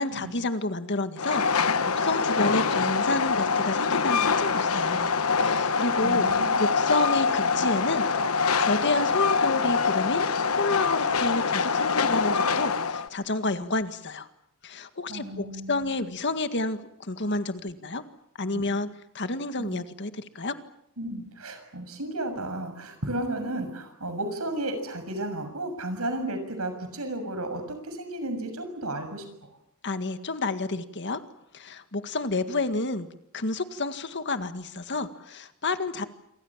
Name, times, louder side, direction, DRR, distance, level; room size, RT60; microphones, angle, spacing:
voice 1, 0.0-5.1 5.4-6.3 6.6-8.1 8.6-10.3 10.5-14.3 14.6-18.0 18.4-18.9 19.1-20.6 29.8-31.2 31.5-36.0, left 2 dB, 55° left, 9 dB, 1.9 m, -30 dB
Train, 1.2-13.1, left 5 dB, 75° left, 1.2 m, -24 dB
voice 2, 6.0-6.5 15.1-16.0 18.5-18.6 19.6-19.8 21.0-29.5, right 1 dB, 80° right, 8 dB, 6.7 m, -33 dB
27.5 x 25.0 x 7.4 m, 0.79 s
head